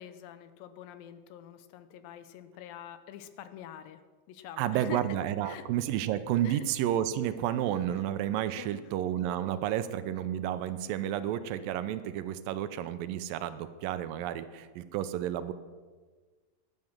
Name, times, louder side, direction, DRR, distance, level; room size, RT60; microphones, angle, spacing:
voice 1, 0.0-4.0 4.3-5.0 5.4-5.7 6.4-6.6 8.6-8.8, left 11 dB, 85° left, 11 dB, 2.5 m, -46 dB
voice 2, 4.6-15.5, right 11 dB, 85° right, 12 dB, 2.3 m, -31 dB
12.5 x 8.9 x 7.3 m, 1.4 s
omnidirectional pair, 4.1 m